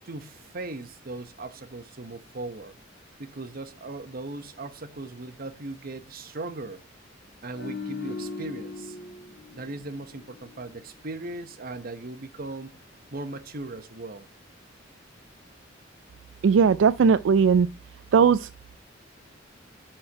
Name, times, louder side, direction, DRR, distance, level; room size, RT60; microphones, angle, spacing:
voice 1, 0.0-2.8 3.2-6.8 7.4-9.0 9.5-12.8 13.1-14.3, right 2 dB, 50° right, 0.9 m, -38 dB
sound 1, 7.5-10.8 11.1-11.3, left 4 dB, 55° left, 3.2 m, -39 dB
voice 2, 16.4-17.7 18.1-18.5, right 6 dB, 70° right, 0.3 m, -18 dB
9.8 x 4.4 x 4.4 m
head